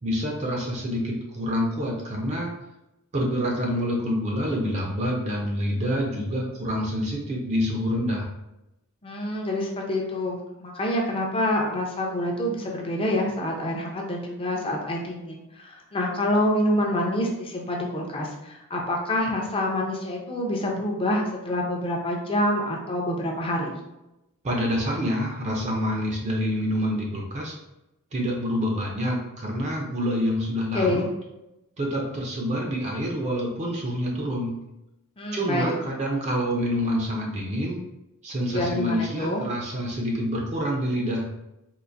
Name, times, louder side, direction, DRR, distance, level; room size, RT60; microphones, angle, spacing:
voice 1, 0.0-2.5 3.1-8.3 24.4-27.5 28.1-31.0 31.8-34.6 35.3-37.8 38.2-41.3, equal, 30° right, -1 dB, 0.5 m, -27 dB
voice 2, 9.0-15.4 15.6-23.8 30.7-31.1 35.2-35.8 38.5-39.4, left 1 dB, 25° left, -1 dB, 0.6 m, -27 dB
3.8 x 2.5 x 2.5 m, 0.93 s
head